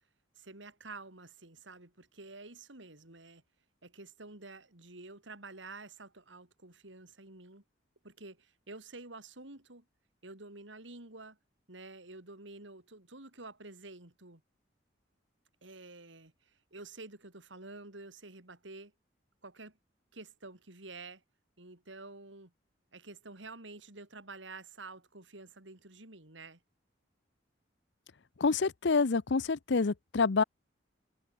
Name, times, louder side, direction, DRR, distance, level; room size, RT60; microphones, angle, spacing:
voice 1, 0.4-3.4 3.8-7.6 8.0-9.9 10.2-11.4 11.7-14.4 15.6-18.9 19.4-19.8 20.1-21.2 21.6-22.5 22.9-26.6, right 3 dB, 75° right, 3.8 m, -49 dB
voice 2, 28.4-30.4, left 4 dB, 65° left, 0.7 m, -27 dB
head